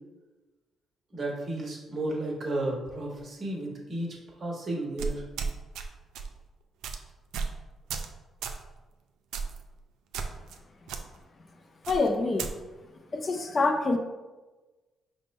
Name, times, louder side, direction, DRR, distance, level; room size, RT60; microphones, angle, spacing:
voice 1, 1.1-5.2, right 1 dB, 40° right, -2 dB, 1.4 m, -33 dB
sound 1, 5.0-5.9 6.1-6.4 6.8-7.0 7.3-7.6 7.9-8.1 8.4-8.6 9.3-9.6 10.1-10.6 10.9-11.0 11.8-12.5, right 5 dB, 85° right, 0.4 m, -33 dB
voice 2, 11.9-12.5 13.1-14.0, left 3 dB, 35° left, 4 dB, 0.4 m, -26 dB
5.2 x 2.1 x 4.1 m, 1.2 s
cardioid pair, 90°, 0 cm